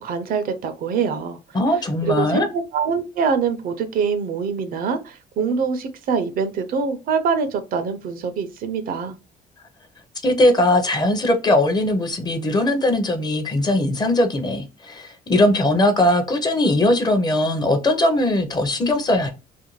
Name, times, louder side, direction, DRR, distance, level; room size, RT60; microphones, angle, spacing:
voice 1, 0.0-1.4 2.0-9.2, right 5 dB, 60° right, 0.5 m, -24 dB
voice 2, 1.5-2.5 10.2-19.3, left 1 dB, 25° left, 0.6 m, -19 dB
2.5 x 2.1 x 3.0 m
cardioid pair, 110°, 17 cm